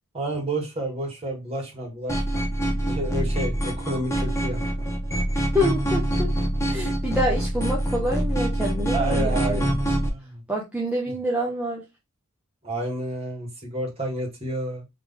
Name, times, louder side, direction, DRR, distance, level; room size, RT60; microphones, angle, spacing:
voice 1, 0.1-2.5 2.8-4.9 6.6-6.8 8.9-9.8 10.1-10.4 12.6-14.8, right 1 dB, 30° right, 2.0 m, -30 dB
sound 1, 2.1-10.1, right 1 dB, 15° left, 1.1 m, -25 dB
voice 2, 5.5-6.3 6.7-9.6 10.5-11.8, equal, 5° right, 1.0 m, -27 dB
3.9 x 3.4 x 3.6 m
head